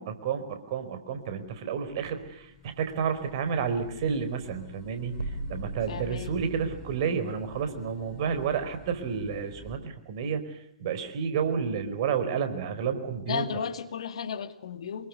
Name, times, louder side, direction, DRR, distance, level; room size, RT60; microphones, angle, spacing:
voice 1, 0.0-10.4 10.8-13.4, right 6 dB, 45° right, 9 dB, 4.7 m, -30 dB
sound 1, 1.2-9.8, left 4 dB, 35° left, 6.7 m, -48 dB
sound 2, 5.2-6.8, right 2 dB, 80° right, 3.8 m, -37 dB
voice 2, 5.9-6.3 13.3-15.1, left 7 dB, 60° left, 10 dB, 2.3 m, -34 dB
26.5 x 23.0 x 9.7 m, 0.72 s
figure-of-eight pair, 115°, 3 cm